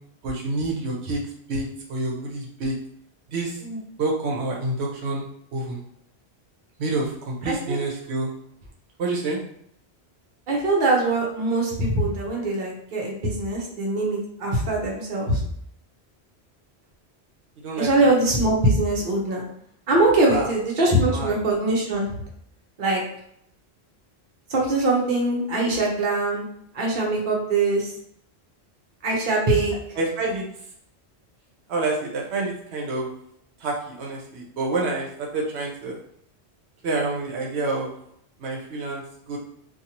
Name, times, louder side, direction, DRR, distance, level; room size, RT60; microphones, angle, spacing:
voice 1, 0.2-1.2 1.5-1.6 1.9-2.7 3.3-3.5 4.0-5.2 5.5-5.8 6.8-8.3 9.0-9.4 17.6-18.1 20.2-20.5 21.0-21.3 29.9-30.4 31.7-33.1 33.6-35.1 35.3-36.0 36.8-37.9 38.4-39.0 39.3-39.4, right 2 dB, 85° right, -2 dB, 0.9 m, -27 dB
voice 2, 7.4-7.8 10.5-15.4 17.8-19.4 19.9-22.1 22.8-23.0 24.5-26.4 26.7-27.9 29.0-29.7, right 2 dB, 55° right, -2 dB, 0.9 m, -22 dB
2.6 x 2.3 x 2.8 m, 0.70 s
omnidirectional pair, 1.1 m